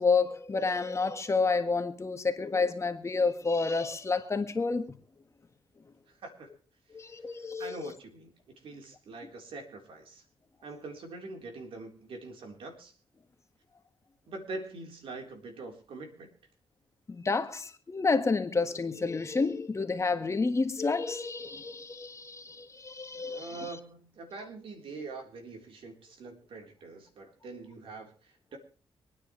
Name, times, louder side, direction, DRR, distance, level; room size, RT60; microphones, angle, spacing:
voice 1, 0.0-5.0 6.9-7.9 17.1-23.8, left 4 dB, 30° left, 1.6 m, -29 dB
voice 2, 7.3-8.3 8.6-10.2 10.6-12.9 14.3-16.3 23.3-28.6, right 3 dB, 70° right, 4.0 m, -44 dB
25.5 x 9.7 x 3.3 m
cardioid pair, 95°, 10 cm